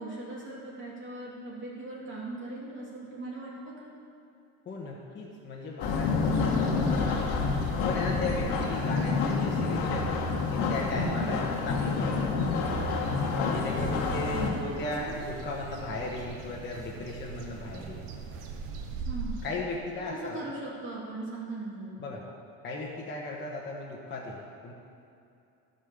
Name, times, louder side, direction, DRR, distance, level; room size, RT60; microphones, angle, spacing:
voice 1, 0.0-3.9 8.5-8.6 11.2-11.4 13.6-15.1 19.1-19.4 20.1-22.0, right 2 dB, 30° right, -6 dB, 2.3 m, -39 dB
voice 2, 4.6-6.3 6.6-7.3 7.8-10.1 10.5-12.3 13.4-18.1 18.9-19.0 19.4-20.4 22.0-22.2 22.6-24.7, left 2 dB, 30° left, -4 dB, 1.3 m, -36 dB
sound 1, 5.8-14.5, left 4 dB, 80° left, 1.5 m, -28 dB
sound 2, 6.2-19.5, right 5 dB, 90° right, 1.1 m, -42 dB
11.5 x 5.6 x 6.9 m, 2.6 s
cardioid pair, 130°, 38 cm